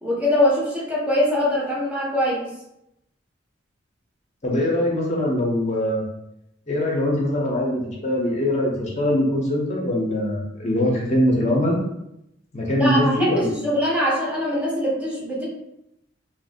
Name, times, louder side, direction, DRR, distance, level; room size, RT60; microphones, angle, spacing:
voice 1, 0.0-2.5 12.8-15.5, left 1 dB, 5° right, -5 dB, 0.5 m, -22 dB
voice 2, 4.4-6.0 6.7-11.8 12.5-13.5, left 1 dB, 35° left, -2 dB, 0.6 m, -22 dB
2.8 x 2.5 x 2.7 m, 0.82 s
head